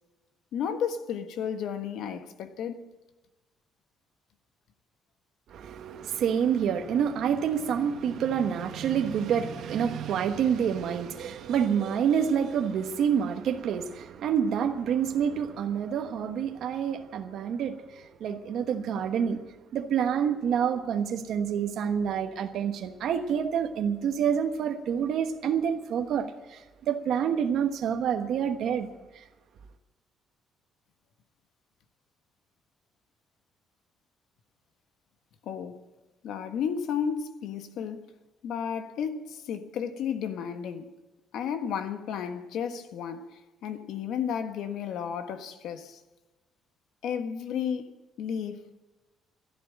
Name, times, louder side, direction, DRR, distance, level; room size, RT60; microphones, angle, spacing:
voice 1, 0.5-2.8 35.4-35.8 36.2-38.1 38.4-40.9 41.3-46.0 47.0-47.9 48.2-48.6, left 7 dB, 75° left, 1.4 m, -33 dB
voice 2, 5.5-28.9 29.1-29.2, right 8 dB, 65° right, 1.1 m, -28 dB
13.0 x 11.0 x 8.9 m
cardioid pair, 140°, 0 cm